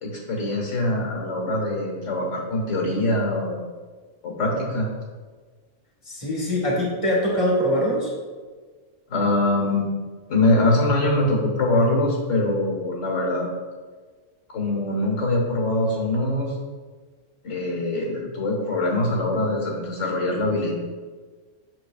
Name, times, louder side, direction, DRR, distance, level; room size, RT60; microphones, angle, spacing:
voice 1, 0.0-3.7 4.2-4.9 9.1-9.9 10.3-13.5 14.5-16.6 17.4-20.7, left 2 dB, 80° left, -1 dB, 1.7 m, -23 dB
voice 2, 6.1-8.1, equal, 25° left, -4 dB, 1.7 m, -23 dB
7.9 x 6.3 x 2.4 m, 1.4 s
omnidirectional pair, 1.3 m